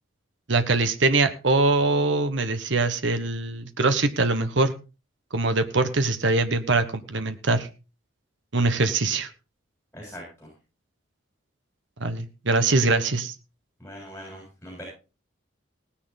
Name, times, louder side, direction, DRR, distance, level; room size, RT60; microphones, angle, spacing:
voice 1, 0.5-4.7 5.3-7.7 8.5-9.3 12.0-13.3, right 3 dB, 60° right, 10 dB, 1.2 m, -23 dB
voice 2, 9.9-10.5 13.8-14.8, equal, 10° left, -3 dB, 7.2 m, -41 dB
18.0 x 9.9 x 4.0 m, 0.32 s
head